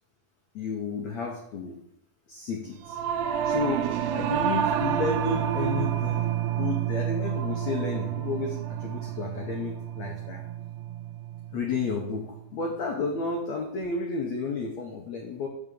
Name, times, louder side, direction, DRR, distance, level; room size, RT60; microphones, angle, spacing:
voice 1, 0.5-1.8 2.3-3.0 3.4-10.4 11.5-15.5, left 4 dB, 85° left, 1 dB, 1.5 m, -32 dB
Singing / Musical instrument, 2.8-12.4, right 10 dB, 80° right, 2.7 m, -29 dB
8.9 x 6.2 x 6.9 m, 0.75 s
omnidirectional pair, 5.0 m